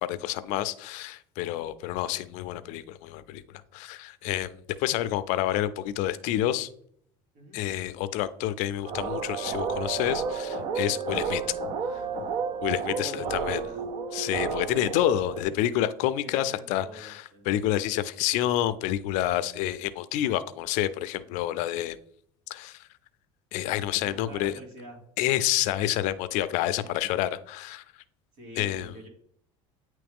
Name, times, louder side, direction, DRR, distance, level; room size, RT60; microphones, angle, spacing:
voice 1, 0.0-3.4 3.7-4.5 4.8-6.7 7.5-11.4 11.9-12.0 12.6-13.6 14.1-22.0 22.5-22.9 23.5-24.5 25.2-27.8 28.6-29.0, left 13 dB, 65° left, 14 dB, 0.4 m, -28 dB
sound 1, 8.8-15.4, right 5 dB, 45° right, 0.7 m, -31 dB
voice 2, 12.8-13.8 14.7-15.0 15.4-15.5 16.2-17.5 24.0-25.0 26.8-26.9 28.3-29.1, equal, 65° right, 1 dB, 2.3 m, -45 dB
9.3 x 3.1 x 3.5 m, 0.65 s
cardioid pair, 130°, 13 cm